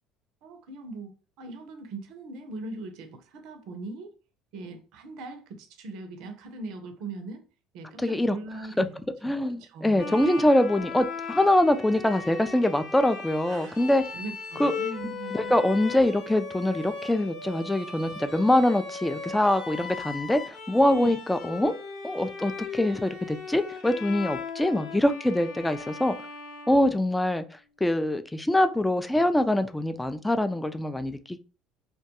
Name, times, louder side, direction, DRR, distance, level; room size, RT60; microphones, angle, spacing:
voice 1, 0.4-4.1 4.5-7.4 7.7-8.9 9.5-10.1 13.4-13.8 14.1-15.7 21.0-21.1, right 3 dB, 65° right, 0.5 m, -40 dB
voice 2, 8.0-8.4 8.8-8.9 9.2-14.0 14.6-14.7 15.0-21.7 22.0-26.1 26.7-27.4 27.8-31.4, left 1 dB, 10° left, 0.3 m, -24 dB
Bowed string instrument, 10.0-27.4, left 5 dB, 65° left, 0.8 m, -38 dB
2.2 x 2.2 x 2.8 m
hypercardioid pair, 70°, 0 cm